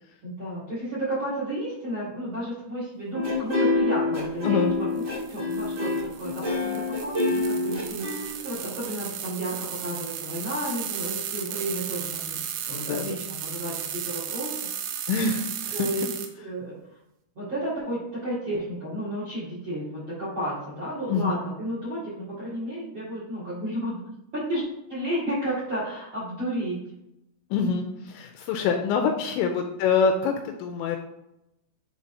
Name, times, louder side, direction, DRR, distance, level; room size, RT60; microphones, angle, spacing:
voice 1, 0.2-5.0 5.3-14.5 15.7-16.1 16.4-16.7 17.3-24.0 24.3-26.8, right 1 dB, 45° right, -8 dB, 1.6 m, -32 dB
sound 1, 3.1-8.9, left 2 dB, 60° right, 0.8 m, -26 dB
sound 2, 5.0-16.3, right 9 dB, 80° right, 2.8 m, -35 dB
voice 2, 12.7-13.1 15.1-15.9 21.1-21.5 27.5-31.0, left 5 dB, 85° left, 3 dB, 2.7 m, -25 dB
10.5 x 3.9 x 2.7 m, 0.84 s
omnidirectional pair, 5.6 m